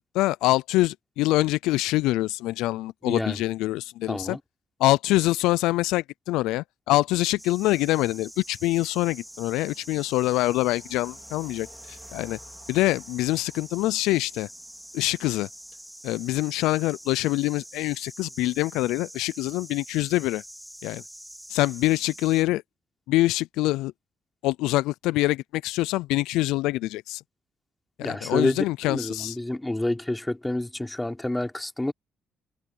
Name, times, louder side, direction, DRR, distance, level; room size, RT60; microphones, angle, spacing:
voice 1, 0.1-4.4 4.8-12.4 12.7-14.5 14.9-15.5 16.0-20.4 20.8-21.0 21.5-22.6 23.1-23.9 24.4-27.2 28.0-29.4, left 18 dB, 85° left, 0.4 m, -25 dB
voice 2, 3.0-3.4 4.1-4.4 28.0-31.9, left 1 dB, 10° left, 3.5 m, -28 dB
sound 1, 7.4-22.4, equal, 5° right, 4.4 m, -45 dB
supercardioid pair, 55°, 0 cm